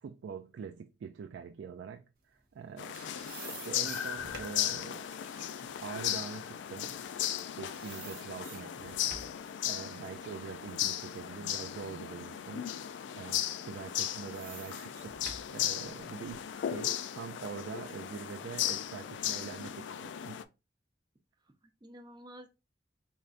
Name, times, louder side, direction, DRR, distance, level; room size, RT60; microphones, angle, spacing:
voice 1, 0.0-3.0 3.5-5.1 5.6-7.0 7.6-9.0 9.6-12.7 13.1-20.4, right 6 dB, 85° right, 0.3 m, -44 dB
sound 1, 2.5-7.4 7.7-9.5 9.9-11.9 12.4-12.5 13.5-16.5, right 5 dB, 55° right, 0.9 m, -51 dB
sound 2, 2.8-20.4, left 11 dB, 80° left, 0.3 m, -36 dB
voice 2, 10.2-10.5 21.4-22.5, equal, 25° right, 0.6 m, -52 dB
3.8 x 3.3 x 2.4 m
head